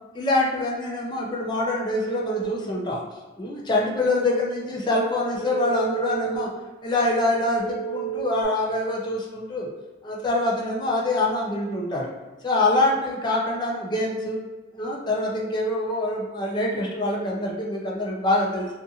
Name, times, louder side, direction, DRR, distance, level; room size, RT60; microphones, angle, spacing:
voice 1, 0.1-3.0 3.4-6.5 6.8-9.7 10.0-12.1 12.4-14.4 14.7-18.7, left 2 dB, 25° left, -3 dB, 0.4 m, -25 dB
Telephone, 1.9-2.4 5.3-6.4 7.6-8.4, right 11 dB, 20° right, 1.0 m, -31 dB
2.5 x 2.5 x 2.7 m, 1.1 s
head